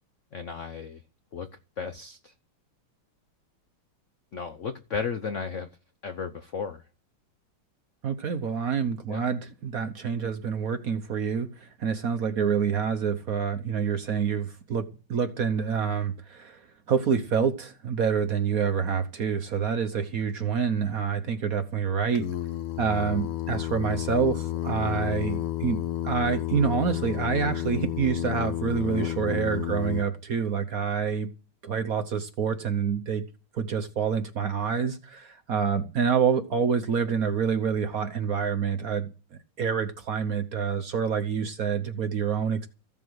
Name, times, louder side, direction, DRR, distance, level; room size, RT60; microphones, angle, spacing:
voice 1, 0.3-1.0 1.3-1.5 1.8-2.3 4.3-5.7 6.0-6.8 9.1-9.2, left 5 dB, 65° left, 0.7 m, -34 dB
voice 2, 8.0-16.6 16.9-22.3 22.8-25.8 26.0-31.3 31.6-33.2 33.5-39.1 39.6-42.7, right 6 dB, 55° right, 1.1 m, -27 dB
Singing, 22.1-30.0, left 13 dB, 85° left, 1.9 m, -31 dB
15.0 x 7.4 x 8.0 m
omnidirectional pair, 2.4 m